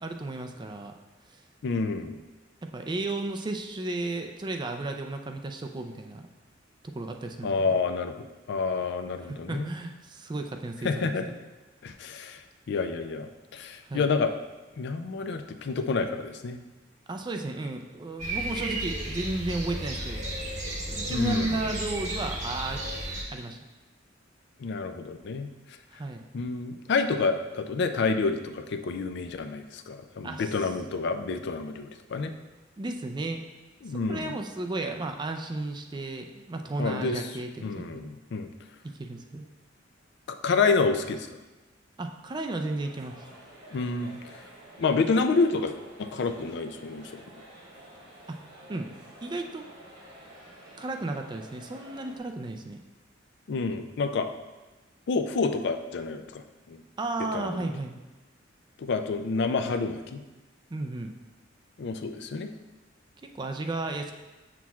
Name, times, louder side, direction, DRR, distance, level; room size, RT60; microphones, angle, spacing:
voice 1, 0.0-0.9 2.7-6.2 6.8-7.8 9.3-11.1 13.9-14.1 17.1-20.2 20.9-22.8 23.3-23.6 25.9-26.2 30.2-30.5 32.8-33.4 34.1-38.0 38.9-39.5 42.0-43.2 48.3-48.4 48.7-48.9 49.2-49.6 50.8-52.8 57.0-57.9 60.7-61.1 63.2-64.1, right 2 dB, 25° right, 5 dB, 0.4 m, -34 dB
voice 2, 1.6-2.2 7.4-8.2 8.5-9.7 10.8-11.3 11.8-12.4 12.7-14.3 14.8-16.6 21.1-21.6 24.6-25.5 26.3-32.3 33.8-34.3 36.8-37.3 37.6-38.5 40.4-41.3 43.7-44.4 44.8-45.7 46.0-47.2 53.5-54.3 55.1-56.4 56.7-56.8 57.3-57.6 58.8-60.2 61.8-62.5, left 4 dB, 60° left, 8 dB, 0.4 m, -28 dB
sound 1, 18.2-23.2, right 1 dB, 40° right, 1.0 m, -33 dB
sound 2, 42.7-52.2, right 1 dB, 55° right, 1.5 m, -50 dB
7.3 x 6.0 x 2.3 m, 1.1 s
head